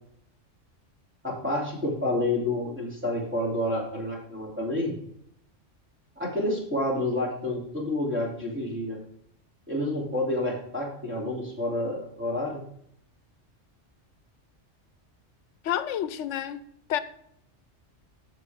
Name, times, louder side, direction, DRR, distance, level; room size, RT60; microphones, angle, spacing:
voice 1, 1.2-4.9 6.2-9.0 9.7-12.6, left 1 dB, 10° right, 2.9 m, -29 dB
voice 2, 15.6-16.6 16.9-17.0, left 11 dB, 90° left, 0.9 m, -29 dB
14.0 x 4.9 x 3.5 m
omnidirectional pair, 1.2 m